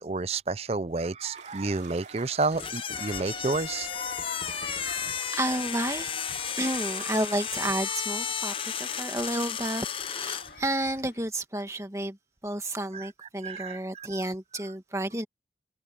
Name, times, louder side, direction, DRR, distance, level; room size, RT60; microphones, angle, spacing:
voice 1, 0.0-3.9 6.6-6.9 12.9-13.1 13.4-14.2, right 3 dB, 35° right, 0.5 m, -30 dB
sound 1, 1.3-7.7, right 5 dB, 90° right, 2.8 m, -49 dB
sound 2, 2.5-10.5, left 7 dB, 30° left, 0.7 m, -33 dB
sound 3, 2.9-11.2, left 4 dB, 60° left, 2.6 m, -44 dB
voice 2, 4.8-6.1 6.6-12.2 12.4-15.2, right 1 dB, 15° right, 2.1 m, -31 dB
head